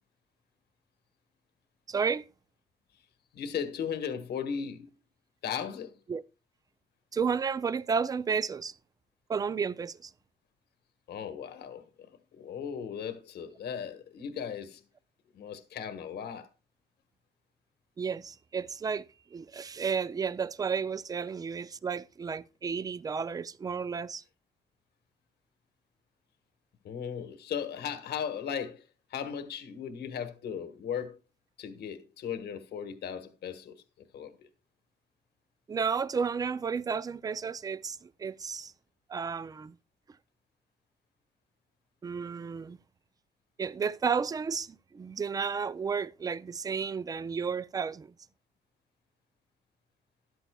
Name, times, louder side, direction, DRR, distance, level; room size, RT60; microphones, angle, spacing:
voice 1, 1.9-2.3 6.1-6.2 7.1-8.7 9.3-10.1 18.0-24.2 35.7-38.7 39.1-39.7 42.0-42.8 43.6-48.1, right 6 dB, 20° right, 0.4 m, -32 dB
voice 2, 3.3-4.9 5.4-5.9 11.1-11.8 12.3-14.8 15.3-16.5 26.8-31.2 31.6-33.7 34.1-34.3, left 7 dB, 75° left, 1.3 m, -37 dB
13.0 x 11.5 x 2.3 m
cardioid pair, 130°, 17 cm